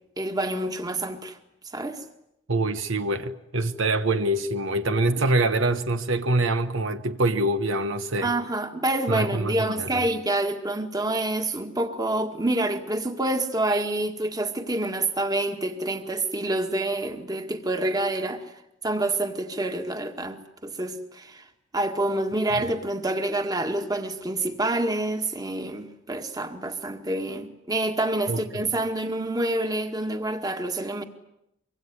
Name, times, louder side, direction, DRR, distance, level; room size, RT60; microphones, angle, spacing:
voice 1, 0.2-1.4 1.6-2.0 8.2-18.6 18.8-21.5 21.7-31.0, right 1 dB, 15° right, 1.9 m, -27 dB
voice 2, 2.5-8.3 9.1-10.0 22.5-22.6 28.3-28.7, right 2 dB, 60° right, 1.1 m, -25 dB
25.0 x 24.5 x 9.6 m
head